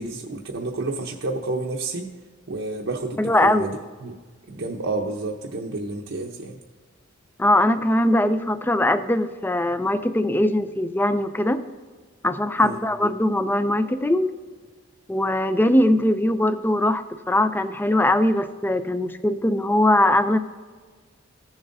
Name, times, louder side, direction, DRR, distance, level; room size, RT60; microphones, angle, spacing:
voice 1, 0.0-2.1 2.5-4.2 4.5-6.6 12.6-12.8, right 2 dB, 65° right, 0 dB, 0.8 m, -30 dB
voice 2, 3.2-3.7 7.4-11.6 12.2-14.3 15.1-20.4, left 1 dB, 10° left, 11 dB, 0.4 m, -21 dB
16.0 x 7.2 x 2.6 m, 1.5 s
head